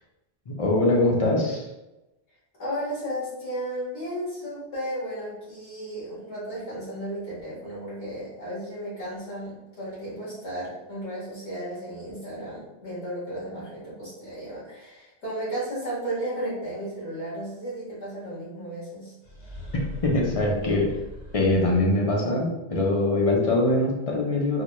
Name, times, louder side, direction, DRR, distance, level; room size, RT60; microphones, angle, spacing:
voice 1, 0.5-1.7 20.0-20.9 21.3-24.6, left 2 dB, 40° left, -2 dB, 0.6 m, -23 dB
voice 2, 2.6-19.1, right 1 dB, 85° left, -9 dB, 2.0 m, -34 dB
sound 1, 19.2-22.2, left 1 dB, 65° left, 1.1 m, -40 dB
4.0 x 2.2 x 3.0 m, 0.98 s
omnidirectional pair, 1.1 m